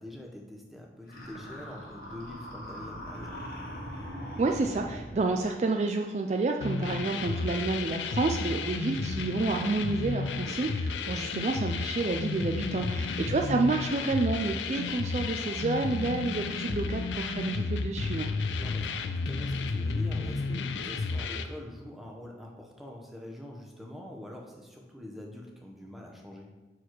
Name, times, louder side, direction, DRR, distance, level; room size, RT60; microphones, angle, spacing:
voice 1, 0.0-3.4 8.6-8.8 12.9-13.1 18.5-26.5, left 1 dB, ahead, 0 dB, 0.8 m, -45 dB
sound 1, 1.1-5.4, equal, 55° left, 1.6 m, -41 dB
voice 2, 4.4-18.3, right 3 dB, 40° right, 3 dB, 0.3 m, -29 dB
sound 2, 6.6-21.5, left 4 dB, 90° left, 0.5 m, -32 dB
6.1 x 4.7 x 4.5 m, 1.1 s
head